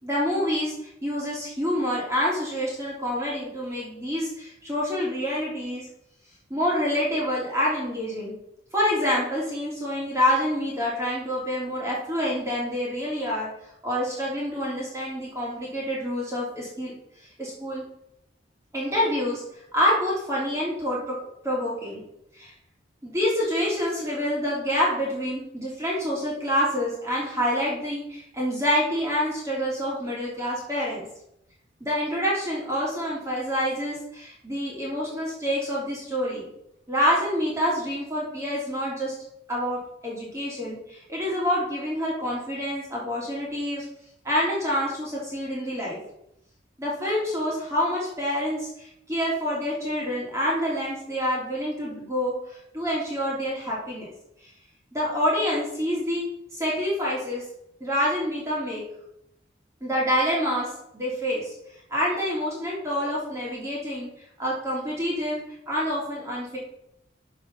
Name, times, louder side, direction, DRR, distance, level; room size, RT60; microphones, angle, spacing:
voice 1, 0.0-5.9 6.5-8.3 8.7-13.5 13.8-16.9 17.2-17.8 18.7-19.4 19.7-21.2 21.4-22.0 22.3-22.5 23.0-31.0 31.8-36.5 36.9-39.1 39.5-43.8 44.2-46.0 46.8-54.1 54.9-56.3 56.5-57.4 57.8-58.8 59.8-61.5 61.9-64.1 64.4-65.4 65.7-66.6, equal, 15° right, -5 dB, 3.0 m, -27 dB
12.5 x 4.8 x 5.5 m, 0.77 s
head